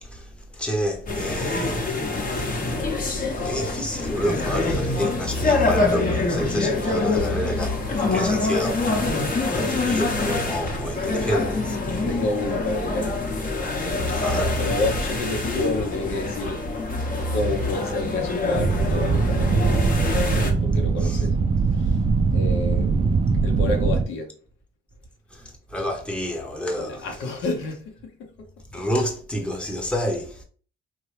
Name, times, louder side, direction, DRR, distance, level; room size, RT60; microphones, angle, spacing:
voice 1, 0.0-1.9 3.4-8.9 9.5-12.0 14.1-14.6 21.0-21.2 25.3-27.1 28.7-30.4, equal, 5° left, 0.7 m, -29 dB
sound 1, 1.1-20.5, left 2 dB, 45° left, 0.8 m, -25 dB
voice 2, 12.1-13.3 13.6-13.7 14.6-16.7 17.3-19.5 20.6-21.4 21.7-22.0 22.3-24.3 26.8-28.5 28.7-28.8, left 2 dB, 85° left, 0.8 m, -30 dB
sound 2, 18.5-24.0, right 4 dB, 30° right, 0.4 m, -21 dB
2.9 x 2.2 x 3.1 m
cardioid pair, 90°, 20 cm